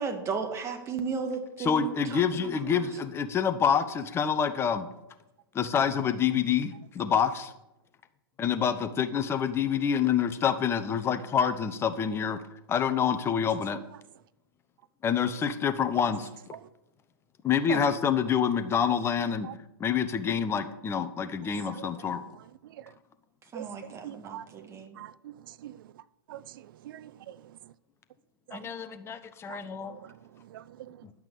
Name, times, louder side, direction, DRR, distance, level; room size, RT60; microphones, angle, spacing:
voice 1, 0.0-2.9 17.7-17.8 23.5-25.0, right 5 dB, 20° right, 1.7 m, -35 dB
voice 2, 1.6-4.9 5.6-7.5 8.4-12.4 12.7-13.8 15.0-16.3 17.4-19.5 19.8-22.2 28.5-30.0 31.0-31.1, left 7 dB, 20° left, 0.8 m, -27 dB
voice 3, 21.7-23.0 23.5-26.0 26.3-27.7 28.5-28.7 29.5-31.1, right 12 dB, 60° right, 0.5 m, -46 dB
11.0 x 5.9 x 6.8 m
hypercardioid pair, 125°, 13 cm